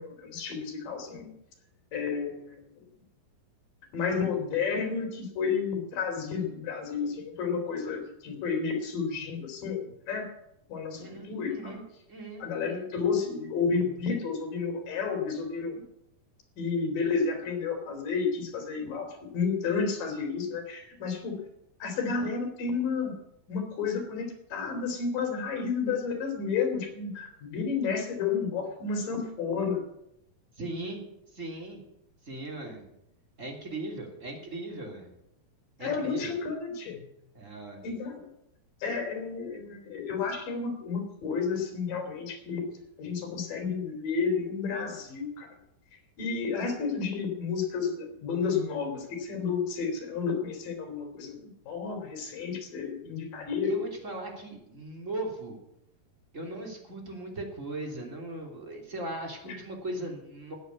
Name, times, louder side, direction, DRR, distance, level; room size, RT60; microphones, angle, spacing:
voice 1, 0.0-1.3 1.9-2.9 3.9-10.3 10.7-11.7 12.4-15.8 16.6-21.4 21.8-23.1 23.5-29.8 35.8-37.1 37.8-38.3 38.8-42.6 43.0-45.5 46.2-53.7 59.4-59.6, left 5 dB, 65° left, 3 dB, 4.8 m, -31 dB
voice 2, 11.0-12.8 30.6-31.0 31.3-31.8 32.2-32.8 33.4-35.1 35.8-36.3 37.3-37.9 53.6-55.6 56.3-60.5, right 2 dB, 20° right, 1 dB, 3.1 m, -38 dB
14.5 x 9.4 x 8.3 m, 0.82 s
omnidirectional pair, 4.2 m